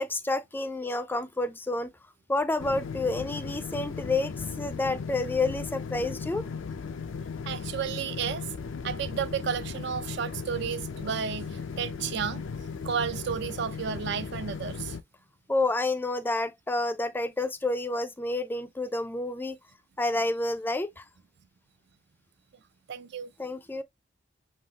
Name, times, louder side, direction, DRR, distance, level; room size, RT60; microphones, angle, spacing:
voice 1, 0.0-1.9 2.3-6.5 15.5-19.6 20.0-21.0 23.4-23.8, left 2 dB, 10° left, 0.3 m, -29 dB
sound 1, 2.6-15.0, left 5 dB, 90° left, 0.5 m, -37 dB
voice 2, 7.5-8.5 8.8-12.5 12.8-15.0 22.9-23.3, right 7 dB, 65° right, 0.4 m, -32 dB
5.6 x 2.7 x 2.8 m
head